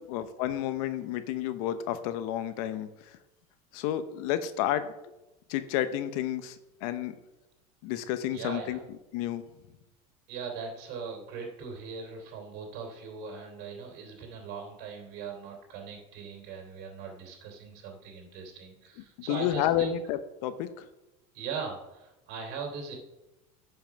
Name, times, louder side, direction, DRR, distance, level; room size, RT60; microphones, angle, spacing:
voice 1, 0.1-2.9 3.7-4.9 5.5-6.6 6.8-7.1 7.8-8.8 9.1-9.4 19.3-20.9, left 11 dB, 70° left, 11 dB, 0.8 m, -30 dB
voice 2, 8.3-8.8 10.3-20.0 21.3-23.0, right 5 dB, 65° right, 2 dB, 2.9 m, -40 dB
10.5 x 5.7 x 5.8 m, 0.96 s
supercardioid pair, 105°, 19 cm